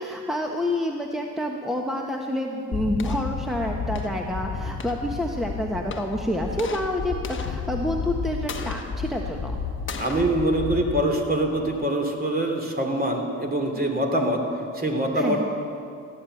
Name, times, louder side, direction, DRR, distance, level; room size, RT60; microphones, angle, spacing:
voice 1, 0.0-9.6 15.1-15.4, left 1 dB, ahead, 1 dB, 1.2 m, -28 dB
sound 1, 2.7-11.9, left 5 dB, 35° left, 1.2 m, -32 dB
voice 2, 10.0-14.4 14.7-15.4, right 1 dB, 30° right, 2 dB, 2.9 m, -24 dB
15.0 x 10.5 x 7.9 m, 2.5 s
supercardioid pair, 75°, 32 cm